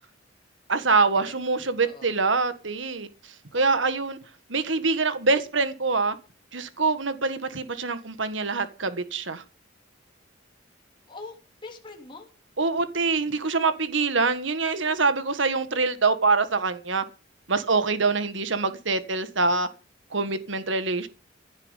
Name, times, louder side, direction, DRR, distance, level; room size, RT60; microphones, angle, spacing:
voice 1, 0.7-3.1 3.5-4.2 4.5-6.2 6.5-9.4 12.6-17.0 17.5-19.7 20.1-21.1, right 4 dB, 75° right, 1.7 m, -24 dB
voice 2, 1.8-2.1 3.5-4.0 11.1-12.3, left 3 dB, 25° left, 3.2 m, -43 dB
16.0 x 7.4 x 8.2 m
head